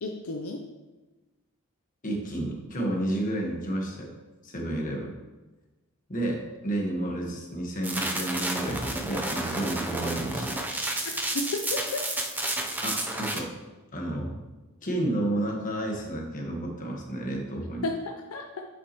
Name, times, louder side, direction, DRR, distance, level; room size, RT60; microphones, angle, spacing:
voice 1, 0.0-0.6 11.3-12.0 17.8-18.6, left 2 dB, 70° left, 3 dB, 0.6 m, -32 dB
voice 2, 2.0-4.1 4.4-5.1 6.1-10.5 12.8-13.5 13.9-14.3 14.8-17.8, right 1 dB, 40° left, 0 dB, 1.4 m, -31 dB
sound 1, 7.8-13.4, right 1 dB, 10° right, 0.6 m, -31 dB
8.0 x 7.0 x 3.0 m, 1.2 s
head